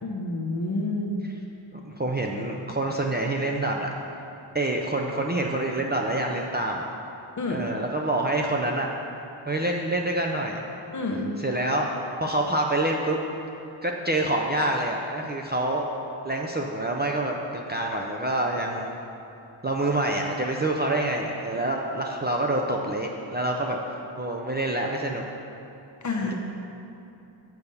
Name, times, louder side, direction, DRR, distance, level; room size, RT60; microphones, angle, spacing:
voice 1, 0.0-1.1 7.4-7.7 10.9-11.3 26.0-26.3, left 2 dB, 40° left, 0 dB, 1.0 m, -28 dB
voice 2, 1.7-3.9 4.2-4.3 4.5-6.9 7.5-8.9 9.5-10.6 11.4-11.9 12.2-13.2 13.8-16.0 16.2-19.0 19.6-25.2, right 1 dB, 20° right, 0 dB, 0.4 m, -27 dB
7.9 x 6.9 x 5.5 m, 2.8 s
wide cardioid pair, 175°, 46 cm